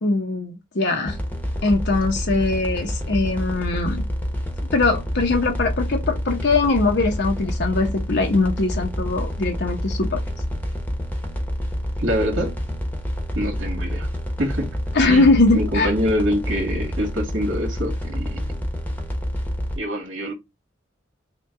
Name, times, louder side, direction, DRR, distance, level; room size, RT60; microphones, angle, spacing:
voice 1, 0.0-1.2 1.6-4.0 4.7-10.2 14.9-15.9, left 3 dB, 60° left, 0.7 m, -21 dB
sound 1, 1.1-19.8, equal, 10° left, 0.9 m, -28 dB
voice 2, 12.0-12.5 13.3-14.1 14.4-14.8 15.1-18.5 19.8-20.3, equal, 75° right, 2.1 m, -25 dB
5.8 x 2.3 x 3.5 m
head